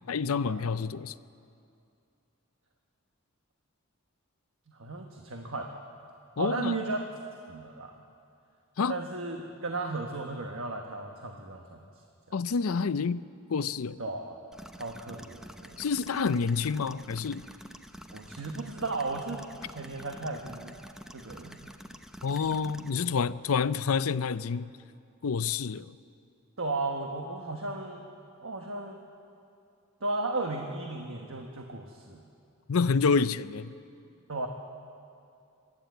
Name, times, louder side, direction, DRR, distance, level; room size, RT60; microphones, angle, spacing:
voice 1, 0.1-1.2 6.4-6.8 8.8-9.0 12.3-14.0 15.8-17.5 22.2-24.7 25.2-25.9 32.7-33.7, left 5 dB, 75° left, 15 dB, 0.5 m, -28 dB
voice 2, 4.8-5.8 6.4-7.0 7.5-8.0 8.9-9.4 9.6-11.8 14.0-14.4 14.7-15.8 18.1-20.8 21.1-21.7 26.6-28.0 28.4-29.0 30.0-32.2 34.3-34.5, right 2 dB, 65° right, 2 dB, 1.3 m, -35 dB
sound 1, 14.5-22.9, equal, 5° right, 0.8 m, -48 dB
26.0 x 12.0 x 8.3 m, 2.5 s
head